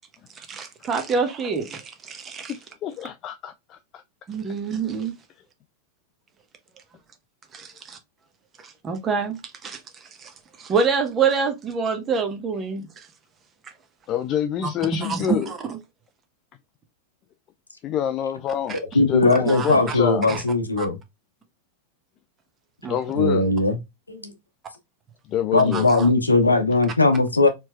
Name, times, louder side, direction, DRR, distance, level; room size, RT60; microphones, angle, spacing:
voice 1, 0.4-2.5 4.3-5.1 7.5-8.0 8.6-9.8 10.2-10.3 10.6-12.9 15.0-15.8 18.7-18.8 19.4-19.9 20.3-20.4 20.8-20.9 22.8-23.0 25.7-26.1, right 5 dB, 25° right, 0.9 m, -26 dB
voice 2, 2.5-4.0 14.1-15.5 17.8-20.3 22.9-23.5 25.3-25.9, left 10 dB, 35° left, 0.3 m, -27 dB
voice 3, 18.9-21.0 23.1-23.8 24.1-24.3 25.5-27.5, left 2 dB, 80° left, 0.8 m, -19 dB
4.4 x 3.1 x 2.2 m
figure-of-eight pair, 90°, 0 cm